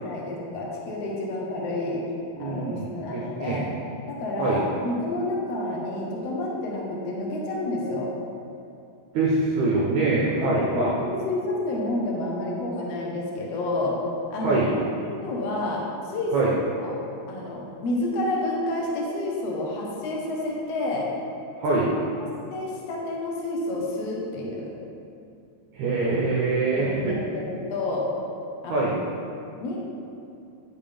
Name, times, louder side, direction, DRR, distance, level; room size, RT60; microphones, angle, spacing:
voice 1, 0.0-2.0 2.4-3.7 4.1-8.1 10.4-14.0 14.3-16.3 16.7-17.0 17.3-21.1 21.7-21.8 22.5-24.7 26.7-28.1 28.6-28.9 29.6-29.8, left 2 dB, 75° left, -3 dB, 1.4 m, -29 dB
voice 2, 2.4-3.6 4.4-4.7 9.1-10.9 14.4-14.7 16.3-16.5 21.6-21.9 25.7-27.1 28.7-29.0, right 3 dB, 90° right, -4 dB, 1.6 m, -24 dB
9.4 x 7.2 x 3.5 m, 2.6 s
omnidirectional pair, 4.7 m